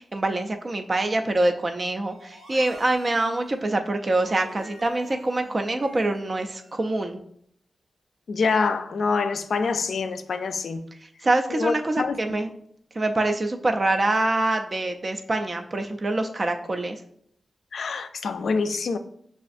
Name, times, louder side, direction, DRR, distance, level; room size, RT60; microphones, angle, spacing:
voice 1, 0.0-7.2 11.2-12.5 13.0-17.0, right 2 dB, 35° right, 0.3 m, -25 dB
sound 1, 2.1-7.0, right 1 dB, 80° right, 0.7 m, -48 dB
voice 2, 8.3-10.8 11.5-12.2 17.7-19.0, left 4 dB, 75° left, 0.3 m, -26 dB
6.7 x 2.4 x 2.5 m
wide cardioid pair, 120°, 0 cm